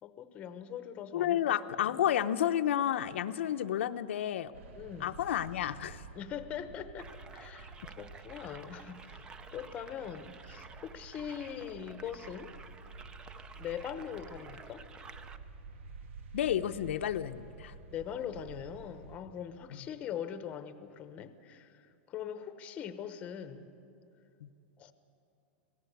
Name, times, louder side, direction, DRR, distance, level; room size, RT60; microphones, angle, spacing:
voice 1, 0.0-1.6 1.8-2.0 4.8-5.2 6.1-12.5 13.6-14.8 17.9-23.7 24.8-24.9, left 9 dB, 20° left, 11 dB, 0.9 m, -42 dB
voice 2, 1.1-4.5 5.0-6.0 16.3-17.7 19.7-19.8 24.4-24.5, left 11 dB, 80° left, 8 dB, 0.7 m, -31 dB
sound 1, 4.5-19.2, right 4 dB, 80° right, 2.1 m, -51 dB
sound 2, 7.0-15.4, right 5 dB, 15° right, 0.5 m, -52 dB
26.0 x 17.5 x 8.2 m, 2.7 s
supercardioid pair, 170°, 7 cm